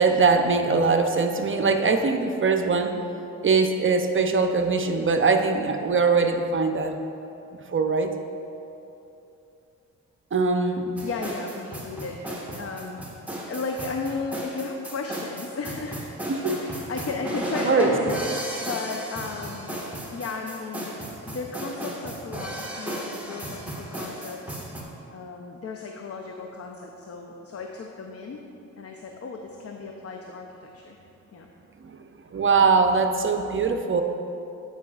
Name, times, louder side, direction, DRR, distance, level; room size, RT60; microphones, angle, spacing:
voice 1, 0.0-2.9 3.4-7.0 7.7-8.1 10.3-10.9 16.3-16.7 17.6-17.9 31.8-32.0 32.3-34.0, right 4 dB, 40° right, 6 dB, 0.6 m, -22 dB
voice 2, 11.0-12.2 12.6-13.0 13.4-16.2 16.6-19.8 20.1-24.8 25.1-28.5 28.8-31.0 31.3-31.5, left 4 dB, 45° left, 2 dB, 0.6 m, -35 dB
sound 1, 11.0-24.8, right 1 dB, 5° right, 1.5 m, -34 dB
12.5 x 5.6 x 2.4 m, 2.8 s
cardioid pair, 60°, 33 cm